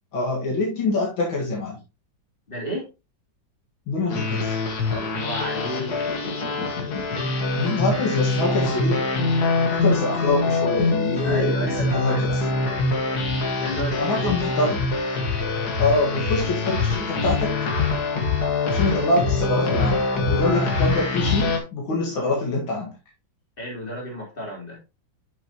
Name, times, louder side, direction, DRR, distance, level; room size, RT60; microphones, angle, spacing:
voice 1, 0.1-1.8 3.9-4.6 7.6-9.0 9.7-12.3 14.0-14.8 15.8-17.6 18.6-22.9, left 2 dB, 85° left, -3 dB, 2.7 m, -25 dB
voice 2, 2.5-2.9 4.9-6.1 11.2-12.6 13.5-14.3 23.6-24.8, equal, 25° left, -3 dB, 3.9 m, -32 dB
sound 1, 4.1-21.6, left 3 dB, 55° left, 1.9 m, -24 dB
8.3 x 7.1 x 3.0 m, 0.27 s
omnidirectional pair, 2.1 m